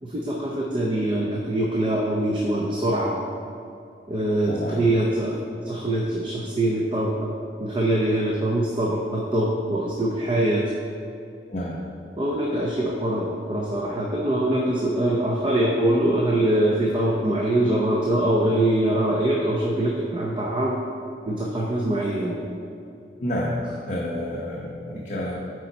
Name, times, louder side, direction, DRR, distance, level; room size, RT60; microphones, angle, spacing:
voice 1, 0.0-3.2 4.1-7.1 7.6-10.6 12.2-20.8 21.2-22.4, right 1 dB, 30° right, -2 dB, 0.6 m, -23 dB
voice 2, 4.5-4.8 11.5-11.8 23.2-23.6 23.9-25.3, equal, 45° left, -4 dB, 0.8 m, -29 dB
8.6 x 4.5 x 4.0 m, 2.6 s
head